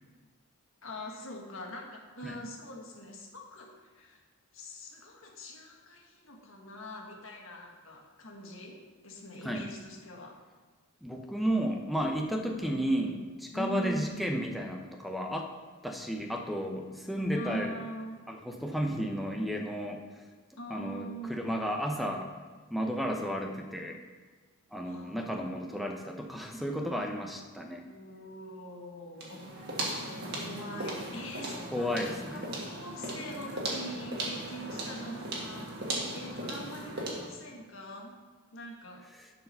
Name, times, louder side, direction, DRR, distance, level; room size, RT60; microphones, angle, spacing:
voice 1, 0.8-4.2 4.5-10.4 12.4-13.2 13.5-14.3 17.3-18.2 20.6-21.4 24.7-26.0 27.8-29.5 30.2-38.2 38.5-39.1, equal, 60° left, 0 dB, 1.5 m, -43 dB
voice 2, 11.0-13.1 13.5-15.5 15.8-17.7 18.3-20.2 20.7-22.3 22.7-24.0 24.7-27.9 31.7-32.4 39.2-39.3, equal, ahead, 3 dB, 0.7 m, -33 dB
sound 1, 29.2-37.4, right 1 dB, 45° right, 1.7 m, -37 dB
11.0 x 4.8 x 5.6 m, 1.4 s
head